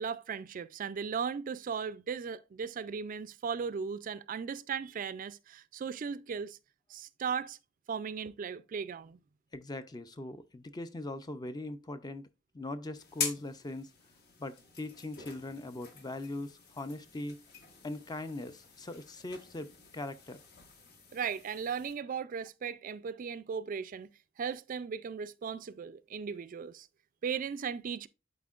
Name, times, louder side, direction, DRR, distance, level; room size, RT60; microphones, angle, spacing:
voice 1, 0.0-6.6 6.9-7.6 7.9-9.2 21.1-24.1 24.4-26.9 27.2-28.1, right 6 dB, 45° right, 0.3 m, -37 dB
voice 2, 9.5-12.3 12.5-13.9 14.4-17.4 17.8-20.4, left 2 dB, 20° left, 0.4 m, -40 dB
sound 1, 13.0-21.9, left 5 dB, 55° left, 1.2 m, -44 dB
11.0 x 4.3 x 2.4 m
head